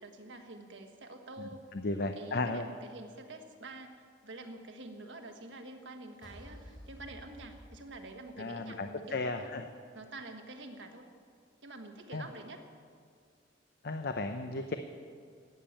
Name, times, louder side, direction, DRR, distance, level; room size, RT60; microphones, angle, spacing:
voice 1, 0.0-1.7 2.0-9.5 9.9-11.1 11.6-12.6, right 2 dB, 75° right, 5 dB, 1.5 m, -47 dB
voice 2, 1.7-2.7 8.4-9.6 12.1-12.3 13.8-14.7, left 2 dB, 55° left, 7 dB, 0.7 m, -34 dB
sound 1, 6.2-8.6, equal, 25° left, 3.8 m, -51 dB
17.5 x 7.5 x 8.7 m, 2.1 s
head